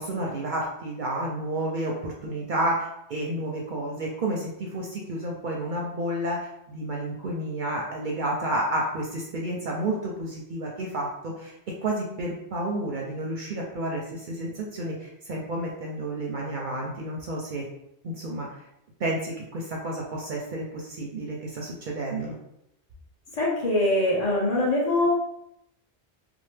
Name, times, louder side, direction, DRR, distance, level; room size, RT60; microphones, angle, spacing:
voice 1, 0.0-11.5 11.8-17.6 18.0-18.5 19.0-22.4, right 1 dB, 60° right, -2 dB, 0.6 m, -30 dB
voice 2, 23.3-25.1, left 1 dB, 40° left, -5 dB, 0.8 m, -23 dB
2.9 x 2.0 x 3.2 m, 0.80 s
omnidirectional pair, 1.1 m